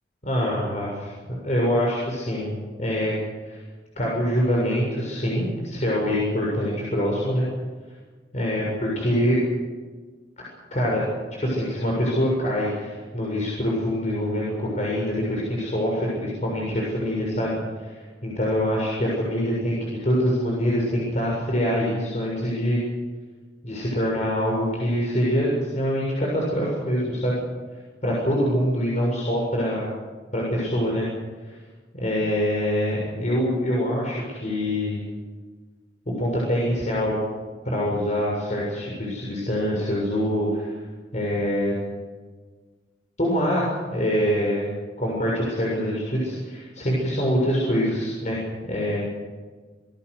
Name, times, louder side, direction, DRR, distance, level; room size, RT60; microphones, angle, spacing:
voice 1, 0.2-3.2 3.4-3.6 4.0-7.5 8.3-9.4 10.4-11.0 11.4-22.8 23.6-27.4 28.0-29.9 30.3-31.1 31.9-35.0 36.1-37.2 37.7-40.7 41.1-41.7 43.2-44.7 45.0-49.1, equal, 45° left, -4 dB, 7.1 m, -25 dB
26.0 x 20.5 x 6.7 m, 1.4 s
head